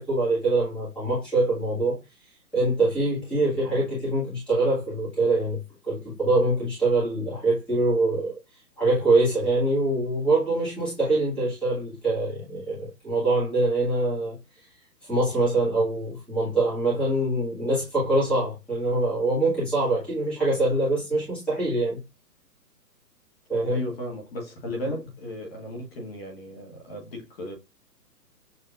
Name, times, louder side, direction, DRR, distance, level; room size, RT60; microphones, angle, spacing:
voice 1, 0.0-2.0 2.5-5.6 5.9-8.3 8.8-14.4 15.1-22.0 23.5-23.8, right 2 dB, ahead, 1.4 m, -24 dB
voice 2, 23.7-27.5, left 1 dB, 35° left, 1.4 m, -35 dB
6.8 x 2.7 x 2.5 m
hypercardioid pair, 165°, 50 cm